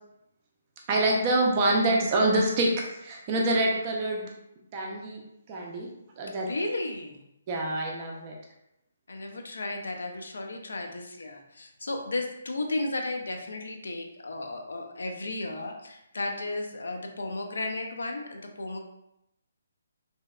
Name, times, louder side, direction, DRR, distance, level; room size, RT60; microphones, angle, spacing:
voice 1, 0.9-2.7 3.0-4.2 4.7-5.2 5.5-5.9 6.2-6.5 7.5-8.3, right 2 dB, 20° right, -1 dB, 0.4 m, -25 dB
voice 2, 6.5-7.3 9.1-18.8, left 2 dB, 85° left, 3 dB, 0.4 m, -34 dB
2.7 x 2.0 x 2.3 m, 0.83 s
hypercardioid pair, 175°, 0 cm